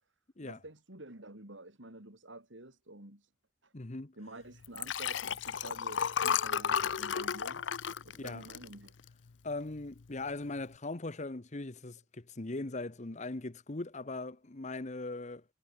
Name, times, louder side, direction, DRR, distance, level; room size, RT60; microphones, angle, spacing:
voice 1, 0.4-3.3 3.6-3.7 4.2-7.6 8.0-8.9, right 1 dB, 80° right, 5.3 m, -49 dB
voice 2, 3.7-4.1 8.1-8.5 9.4-15.4, left 2 dB, 40° left, 1.0 m, -40 dB
Liquid, 4.6-9.3 9.8-10.0 10.3-10.4, left 7 dB, 75° left, 0.6 m, -33 dB
head